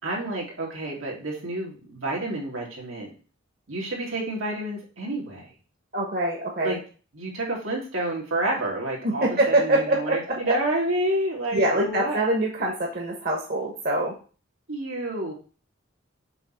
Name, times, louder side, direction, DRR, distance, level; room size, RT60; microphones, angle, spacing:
voice 1, 0.0-3.1 3.7-5.5 6.6-6.8 7.1-12.2 14.7-15.3, right 1 dB, 90° right, -2 dB, 2.7 m, -29 dB
voice 2, 5.9-6.8 9.2-10.5 11.5-14.1, right 1 dB, 50° right, 0 dB, 1.3 m, -24 dB
6.9 x 3.2 x 5.8 m, 0.37 s
head